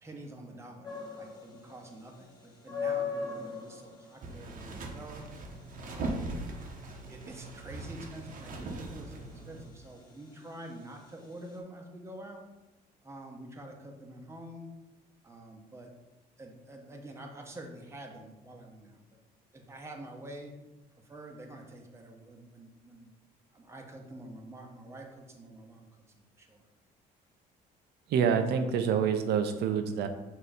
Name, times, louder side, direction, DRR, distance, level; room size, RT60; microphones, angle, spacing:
voice 1, 0.0-5.3 5.8-6.3 7.1-12.5 13.0-14.7 15.2-15.9 16.4-19.2 19.5-20.6 21.0-23.1 23.5-25.9 26.4-26.7, right 1 dB, 15° right, 1 dB, 1.0 m, -47 dB
sound 1, 0.8-11.6, left 5 dB, 25° left, 1.5 m, -41 dB
sound 2, 4.2-9.7, right 2 dB, 55° right, 1.0 m, -40 dB
voice 2, 28.1-30.1, right 7 dB, 75° right, 7 dB, 0.7 m, -27 dB
6.9 x 3.0 x 5.1 m, 1.0 s
cardioid pair, 110°, 17 cm